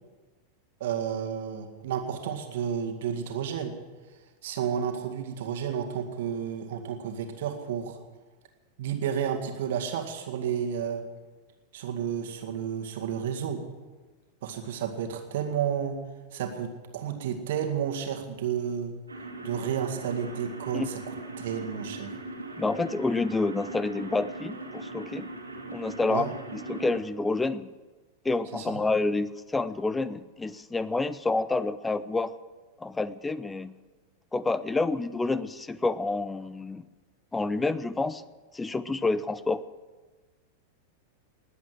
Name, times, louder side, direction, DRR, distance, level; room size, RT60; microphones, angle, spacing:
voice 1, 0.8-3.7 4.4-8.0 8.8-11.0 11.7-13.6 14.4-16.0 16.3-18.9 19.4-22.1 26.1-26.3 28.5-28.8, right 8 dB, 55° right, 5 dB, 2.0 m, -31 dB
sound 1, 19.1-27.0, right 2 dB, 80° right, 2.4 m, -40 dB
voice 2, 22.6-25.3 25.7-27.7 28.2-32.3 32.8-33.7 34.3-36.8 37.3-38.2 38.5-39.6, left 3 dB, 10° left, 17 dB, 0.5 m, -28 dB
20.0 x 8.2 x 7.7 m, 1.3 s
figure-of-eight pair, 90°, 0 cm